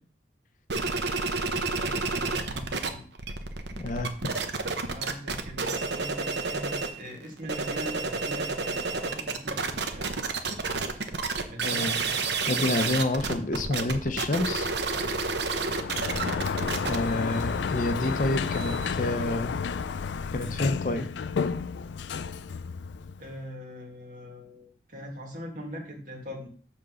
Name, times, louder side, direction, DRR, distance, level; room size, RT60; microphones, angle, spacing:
sound 1, 0.7-2.9 3.1-7.0 7.4-18.9, right 4 dB, 70° right, 0.9 m, -30 dB
voice 1, 1.6-3.1 4.9-10.1 11.5-12.1 23.2-26.5, equal, 50° right, -1 dB, 2.2 m, -41 dB
voice 2, 3.7-4.3 11.6-12.0 12.5-14.7 16.8-19.5 20.3-21.1, left 2 dB, 45° left, 8 dB, 0.7 m, -28 dB
Sliding door, 15.6-23.4, left 5 dB, 80° left, 0.4 m, -31 dB
7.2 x 4.1 x 6.3 m, 0.44 s
head